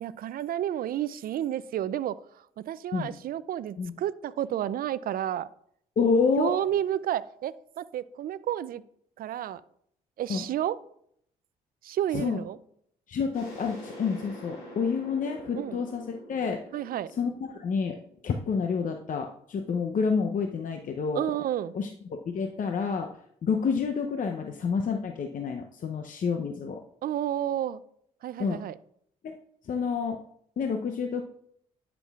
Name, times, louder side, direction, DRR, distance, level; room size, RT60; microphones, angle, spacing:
voice 1, 0.0-5.5 6.4-8.8 9.2-9.6 10.2-10.8 11.8-12.6 15.5-15.8 16.7-17.1 21.1-21.7 27.0-27.8 28.2-28.8, right 11 dB, 60° right, 18 dB, 0.4 m, -31 dB
voice 2, 6.0-6.6 10.3-10.4 12.1-12.4 13.1-16.0 16.3-16.6 17.2-18.0 18.2-21.2 21.7-23.1 23.4-26.8 28.4-28.6 29.2-29.4 29.6-30.2 30.6-31.2, left 5 dB, 50° left, 4 dB, 0.7 m, -28 dB
sound 1, 13.3-18.8, equal, 85° left, 3.1 m, -46 dB
10.5 x 6.0 x 2.4 m, 0.69 s
supercardioid pair, 55°, 17 cm